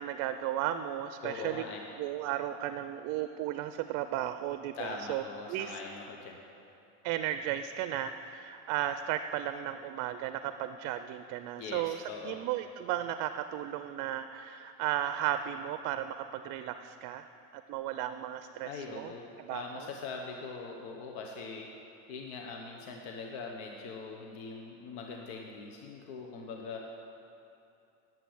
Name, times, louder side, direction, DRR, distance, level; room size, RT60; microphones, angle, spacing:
voice 1, 0.0-1.6 2.0-5.8 7.0-17.3 17.5-19.1 19.4-19.9, right 11 dB, 65° right, 10 dB, 0.5 m, -35 dB
voice 2, 1.2-1.8 4.7-6.4 11.6-12.4 18.6-21.7 22.1-27.0, left 4 dB, 90° left, 1 dB, 1.1 m, -42 dB
10.5 x 7.5 x 7.8 m, 2.7 s
cardioid pair, 130°, 33 cm